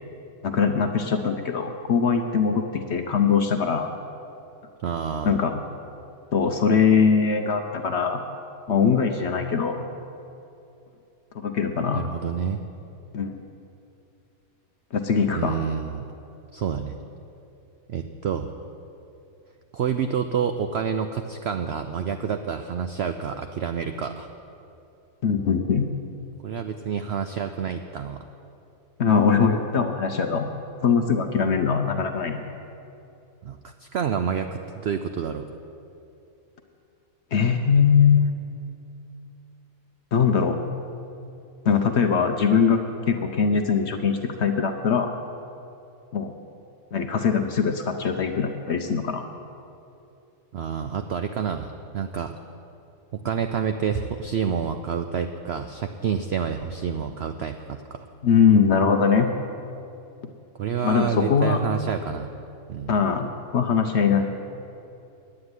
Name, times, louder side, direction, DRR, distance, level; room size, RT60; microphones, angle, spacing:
voice 1, 0.4-3.9 5.2-5.6 6.3-8.2 8.7-9.8 11.3-12.1 13.1-13.4 14.9-15.6 25.2-25.9 29.0-30.5 30.8-32.4 37.3-38.3 40.1-40.6 41.6-42.8 43.1-45.1 46.1-46.3 46.9-49.2 58.2-59.3 60.8-61.6 62.9-64.2, left 6 dB, 60° left, 6 dB, 0.8 m, -21 dB
voice 2, 4.8-5.4 11.9-12.6 15.3-16.1 16.5-17.0 17.9-18.5 19.7-24.3 26.4-28.3 33.4-35.5 50.5-52.4 53.1-58.0 60.6-62.3 62.7-62.9, right 7 dB, 75° right, 7 dB, 0.5 m, -28 dB
9.6 x 8.8 x 9.6 m, 2.7 s
omnidirectional pair, 1.7 m